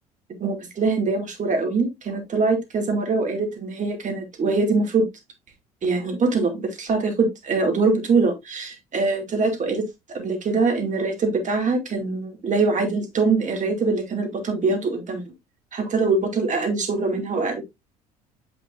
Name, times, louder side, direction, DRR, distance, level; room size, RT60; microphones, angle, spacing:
voice 1, 0.4-5.1 5.8-9.8 10.1-15.2 15.7-17.6, right 3 dB, 40° right, 4 dB, 2.6 m, -23 dB
7.9 x 5.9 x 2.6 m, 0.20 s
hypercardioid pair, 60°, 20 cm